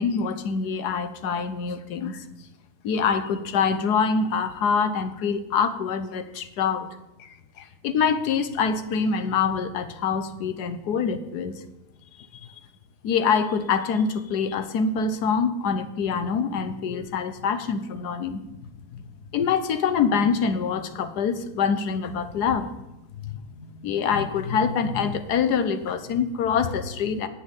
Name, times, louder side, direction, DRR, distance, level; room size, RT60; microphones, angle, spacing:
voice 1, 0.0-2.2 2.8-6.9 7.2-7.3 7.6-11.6 13.0-18.4 18.9-19.0 19.3-22.7 23.2-27.3, left 6 dB, 85° left, 11 dB, 1.4 m, -25 dB
10.0 x 6.4 x 8.8 m, 0.94 s
omnidirectional pair, 1.7 m